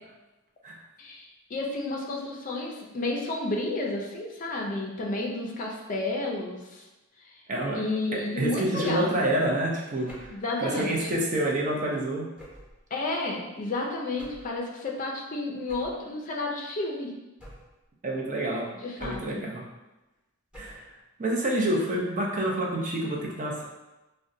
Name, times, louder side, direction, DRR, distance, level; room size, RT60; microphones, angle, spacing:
voice 1, 1.0-6.9 7.2-7.4 7.7-9.3 10.3-11.1 12.9-17.1 18.8-19.4, left 2 dB, 40° left, 0 dB, 0.4 m, -31 dB
voice 2, 7.5-7.8 8.1-10.3 10.6-12.3 18.0-18.7 19.0-19.6 20.5-23.6, right 1 dB, 40° right, -2 dB, 0.5 m, -28 dB
sound 1, 10.1-10.5 12.4-12.8 14.2-14.6 15.7-16.1 17.4-17.9 19.0-19.5 20.5-21.0, equal, 5° right, 0.8 m, -46 dB
3.7 x 2.1 x 2.6 m, 1.0 s
head